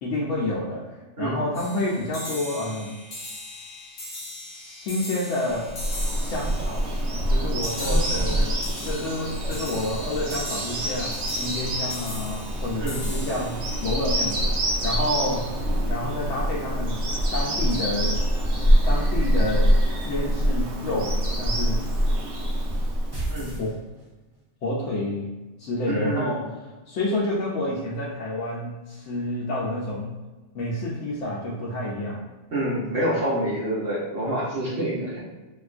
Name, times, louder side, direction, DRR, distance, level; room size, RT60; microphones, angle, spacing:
voice 1, 0.0-3.0 4.5-5.7 6.2-6.8 7.3-15.5 15.9-17.0 17.3-18.2 18.8-19.8 20.0-21.9 23.6-23.8 24.6-25.3 25.6-26.4 26.9-30.2 30.5-32.2, left 1 dB, 80° left, -6 dB, 0.9 m, -29 dB
sound 1, 1.5-15.0, left 1 dB, 55° left, 0.8 m, -39 dB
Bird vocalization bird call bird song, 5.6-23.6, equal, 70° right, 0.9 m, -25 dB
voice 2, 7.8-8.3 12.8-13.0 23.3-23.5 25.9-26.4 32.5-35.2, right 1 dB, 90° right, -7 dB, 1.4 m, -27 dB
sound 2, 23.1-24.4, right 3 dB, 35° right, 0.4 m, -34 dB
3.6 x 2.3 x 2.4 m, 1.2 s
omnidirectional pair, 1.3 m